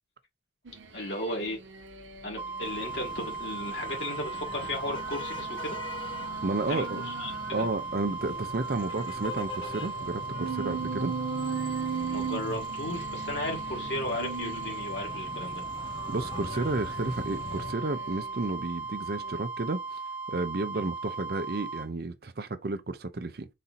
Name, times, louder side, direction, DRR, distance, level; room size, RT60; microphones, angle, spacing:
sound 1, 0.7-2.7 3.2-7.7 8.2-15.1 15.7-18.6 19.1-19.4, right 6 dB, 85° right, 0.7 m, -40 dB
voice 1, 0.9-1.6 2.2-5.8 6.7-7.3 7.6-7.7 12.1-15.6 20.7-20.9, left 1 dB, 70° left, 1.7 m, -35 dB
sound 2, 2.4-21.9, right 4 dB, 30° right, 1.0 m, -37 dB
sound 3, 2.6-17.7, left 3 dB, 25° left, 0.3 m, -42 dB
voice 2, 6.4-7.0 7.5-11.1 16.1-20.0 20.3-23.5, right 2 dB, 55° right, 0.6 m, -32 dB
4.1 x 2.7 x 4.0 m
head